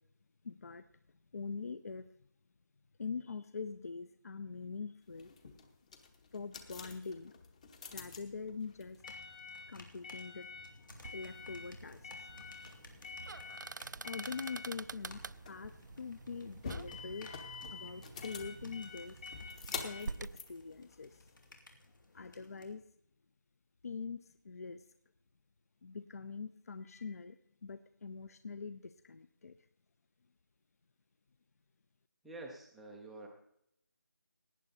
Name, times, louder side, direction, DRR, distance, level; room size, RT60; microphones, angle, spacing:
voice 1, 0.4-0.9 1.3-2.1 3.0-5.3 6.3-7.3 7.9-9.0 9.7-10.5 11.1-12.3 14.0-17.4 17.7-19.2 19.7-21.3 22.1-22.8 23.8-24.9 25.8-29.6, left 5 dB, 50° left, 13 dB, 0.6 m, -44 dB
sound 1, 5.1-21.5, left 5 dB, 20° left, 0.9 m, -48 dB
sound 2, 9.0-22.7, left 1 dB, 80° left, 2.7 m, -58 dB
sound 3, 10.9-20.4, right 4 dB, 65° right, 0.4 m, -48 dB
voice 2, 32.2-33.3, right 2 dB, ahead, -1 dB, 0.4 m, -48 dB
17.5 x 9.7 x 4.1 m, 0.75 s
figure-of-eight pair, 165°, 11 cm